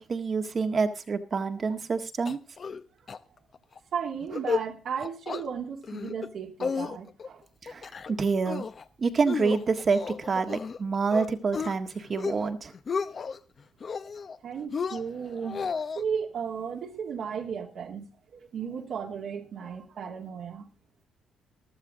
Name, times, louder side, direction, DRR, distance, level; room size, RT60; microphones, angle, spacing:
voice 1, 0.0-2.4 7.6-8.6 9.0-12.7, right 4 dB, 40° right, 1.7 m, -27 dB
sound 1, 2.3-2.8 3.1-3.2 3.5-3.8 4.2-4.7 5.0-5.4 5.8-6.3 6.6-7.3 7.7-8.1 8.5-8.8 9.3-10.8 11.1-11.7 12.1-12.5 12.7-13.4 13.8-14.4 14.7-16.0, left 5 dB, 45° left, 0.8 m, -33 dB
voice 2, 3.9-7.4 14.4-20.7, right 7 dB, 65° right, 2.5 m, -35 dB
14.5 x 12.5 x 3.8 m
cardioid pair, 90°, 0 cm